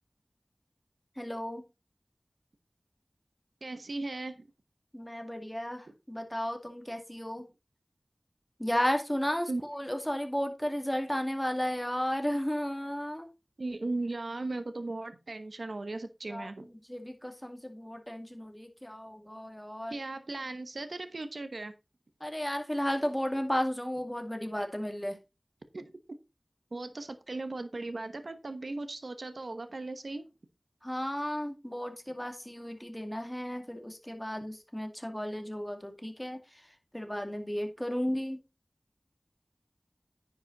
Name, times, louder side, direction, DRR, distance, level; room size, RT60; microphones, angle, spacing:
voice 1, 1.2-1.6 4.9-7.5 8.6-13.3 16.3-20.0 22.2-25.2 30.8-38.4, equal, 10° left, 4 dB, 2.2 m, -34 dB
voice 2, 3.6-4.5 9.5-9.6 13.6-16.7 19.9-21.7 25.7-25.9 26.7-30.2, right 2 dB, 80° right, 10 dB, 1.0 m, -37 dB
10.0 x 5.2 x 4.1 m, 0.26 s
wide cardioid pair, 45°, 0 cm